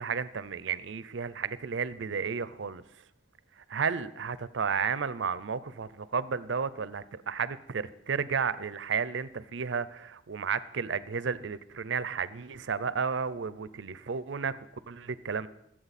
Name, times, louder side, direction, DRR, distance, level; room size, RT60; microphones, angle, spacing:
voice 1, 0.0-2.8 3.7-14.6 14.9-15.5, right 6 dB, 70° right, 17 dB, 0.5 m, -32 dB
22.0 x 7.6 x 4.2 m, 0.79 s
head